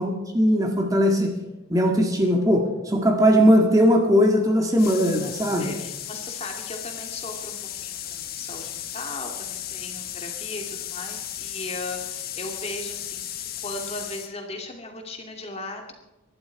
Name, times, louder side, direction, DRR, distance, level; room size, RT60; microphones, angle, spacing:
voice 1, 0.0-1.3 1.7-5.7, equal, 15° right, 2 dB, 1.9 m, -19 dB
sound 1, 4.8-14.3, left 11 dB, 45° left, 1.2 m, -35 dB
voice 2, 5.6-15.9, left 2 dB, 30° left, 2 dB, 2.4 m, -37 dB
24.0 x 12.0 x 4.7 m, 1.0 s
head